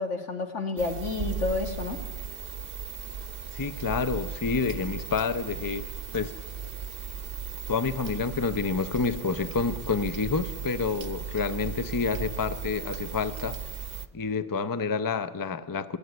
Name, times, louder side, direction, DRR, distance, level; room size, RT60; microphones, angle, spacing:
voice 1, 0.0-2.0, left 3 dB, 85° left, 5 dB, 2.2 m, -30 dB
sound 1, 0.8-14.1, right 6 dB, 55° right, 0.9 m, -37 dB
voice 2, 3.5-5.9 6.1-6.3 7.7-13.6 14.1-16.0, left 4 dB, 25° left, 13 dB, 0.5 m, -28 dB
21.0 x 15.5 x 9.3 m, 1.3 s
omnidirectional pair, 1.2 m